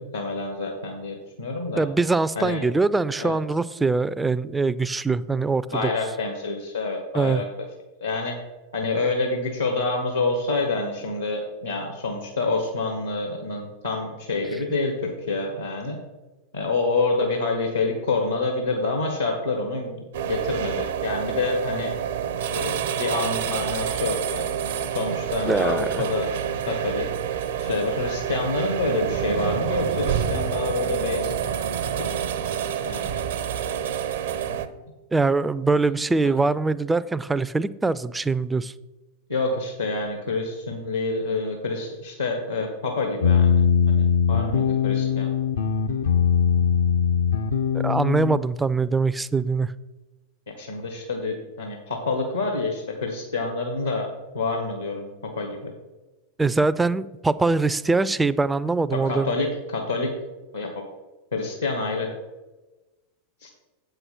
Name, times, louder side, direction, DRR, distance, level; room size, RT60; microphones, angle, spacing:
voice 1, 0.0-1.8 2.3-2.6 3.2-3.4 5.7-7.4 8.0-8.4 8.7-16.0 16.5-21.9 22.5-24.5 24.9-26.4 26.7-27.0 27.6-31.3 32.0-32.1 32.8-33.2 34.4-34.7 39.3-43.5 43.9-45.3 46.5-46.7 50.5-54.1 54.3-55.7 58.9-60.1 60.5-60.7 61.3-62.1 63.4-63.5, left 3 dB, 80° left, 2 dB, 1.4 m, -27 dB
voice 2, 1.8-5.9 7.1-7.4 25.4-26.0 35.1-38.7 47.7-49.7 56.4-59.3, right 3 dB, 10° right, 16 dB, 0.3 m, -23 dB
sound 1, 20.1-34.7, right 9 dB, 60° right, 0.6 m, -28 dB
sound 2, 43.2-48.4, left 7 dB, 65° left, 0.6 m, -21 dB
7.9 x 5.8 x 5.9 m, 1.1 s
figure-of-eight pair, 90°, 0 cm